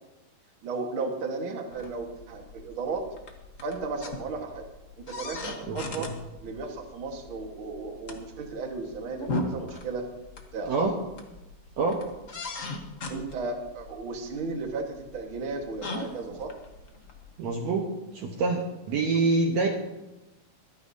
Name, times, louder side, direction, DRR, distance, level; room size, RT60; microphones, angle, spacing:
voice 1, 0.6-3.1 3.6-4.6 5.0-6.1 6.4-10.1 10.5-10.9 13.1-16.5, right 4 dB, 45° right, 2 dB, 2.0 m, -34 dB
sound 1, 1.7-17.4, left 2 dB, 70° left, 0.7 m, -40 dB
voice 2, 5.7-6.1 10.7-10.9 11.8-12.0 17.4-17.9 18.1-18.6 18.9-19.7, right 3 dB, 65° right, 1 dB, 2.1 m, -26 dB
24.5 x 9.7 x 2.8 m, 1.0 s
omnidirectional pair, 3.6 m